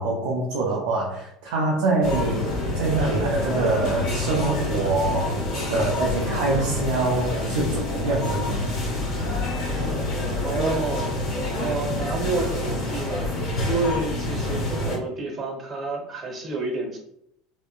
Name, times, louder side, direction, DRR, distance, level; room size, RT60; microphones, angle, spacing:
voice 1, 0.0-5.4 5.7-8.6, right 2 dB, 65° right, -1 dB, 0.5 m, -25 dB
sound 1, 2.0-15.0, left 1 dB, 50° left, 1.3 m, -27 dB
voice 2, 10.4-11.1 11.6-13.3 13.7-17.0, right 3 dB, 35° right, 2 dB, 1.0 m, -29 dB
3.7 x 2.0 x 2.4 m, 0.72 s
figure-of-eight pair, 70°, 0 cm